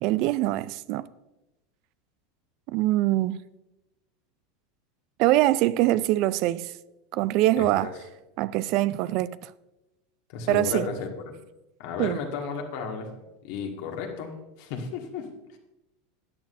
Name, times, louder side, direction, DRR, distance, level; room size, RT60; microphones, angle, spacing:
voice 1, 0.0-1.1 2.7-3.4 5.2-6.7 7.1-7.9 8.4-9.5 10.5-10.9 12.0-12.2, right 16 dB, 55° right, 0.3 m, -23 dB
voice 2, 7.6-7.9 10.3-11.1 11.8-13.1 13.4-15.6, left 5 dB, 65° left, 1.7 m, -34 dB
13.5 x 9.3 x 2.6 m
hypercardioid pair, 90°, 0 cm